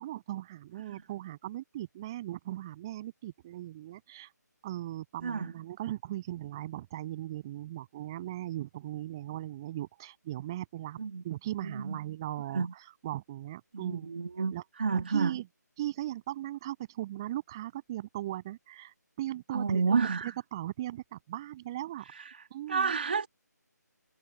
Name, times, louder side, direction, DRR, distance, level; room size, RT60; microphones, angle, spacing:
voice 1, 0.0-4.3 4.6-11.0 11.2-14.1 14.5-14.6 14.9-15.5 15.8-22.1 22.5-22.9, right 14 dB, 15° right, 7.2 m, -38 dB
voice 2, 5.2-5.5 11.0-11.2 11.6-12.0 12.5-12.7 13.7-15.4 19.5-20.3 22.1-23.3, right 5 dB, 35° right, 1.8 m, -30 dB
hypercardioid pair, 180°, 10 cm